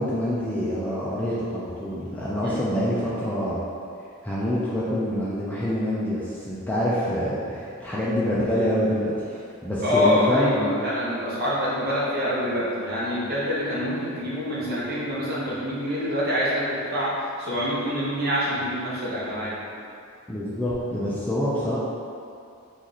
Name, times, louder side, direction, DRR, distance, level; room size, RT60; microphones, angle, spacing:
voice 1, 0.0-3.6 4.2-10.8 20.3-21.8, equal, 5° left, -8 dB, 0.3 m, -26 dB
voice 2, 9.8-19.6, left 1 dB, 45° right, -8 dB, 0.9 m, -26 dB
3.0 x 2.5 x 4.0 m, 2.4 s
head